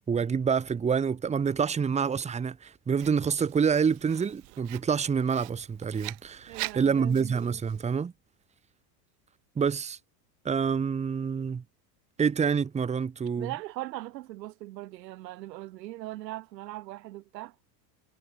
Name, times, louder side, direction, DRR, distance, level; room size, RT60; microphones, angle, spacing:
voice 1, 0.1-8.1 9.6-10.0 10.4-11.6 12.2-13.5, right 6 dB, 15° right, 1.2 m, -27 dB
Writing, 3.0-8.0, right 34 dB, 55° right, 2.4 m, -43 dB
voice 2, 6.5-7.3 13.4-17.5, right 16 dB, 85° right, 1.5 m, -39 dB
supercardioid pair, 130°, 49 cm